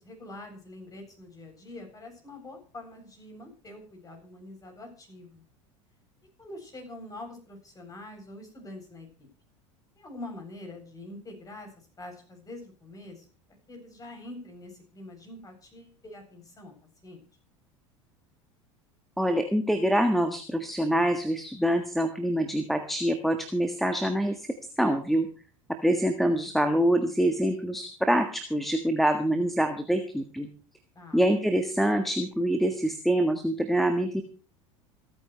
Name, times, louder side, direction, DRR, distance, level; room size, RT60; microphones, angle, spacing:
voice 1, 0.0-5.4 6.4-9.3 10.0-11.7 12.0-13.3 13.7-16.7 17.0-17.2 30.9-31.2, left 2 dB, 20° left, 3 dB, 7.9 m, -45 dB
voice 2, 19.2-24.5 24.8-25.3 25.8-30.5 31.1-34.2, right 1 dB, ahead, 5 dB, 1.5 m, -25 dB
27.5 x 9.4 x 3.3 m, 0.39 s
figure-of-eight pair, 75°, 16 cm